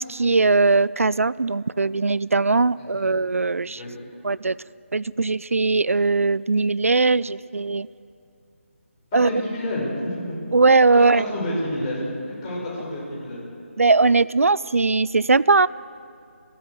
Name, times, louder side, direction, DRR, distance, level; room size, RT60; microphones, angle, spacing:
voice 1, 0.0-3.8 4.2-4.6 4.9-7.9 9.1-9.3 10.5-11.2 13.8-15.7, right 3 dB, 80° right, 21 dB, 0.4 m, -19 dB
voice 2, 2.8-3.1 3.8-3.9 9.1-10.4 10.9-13.4, left 1 dB, 25° left, -4 dB, 6.6 m, -29 dB
27.0 x 13.5 x 8.2 m, 2.5 s
figure-of-eight pair, 160°, 7 cm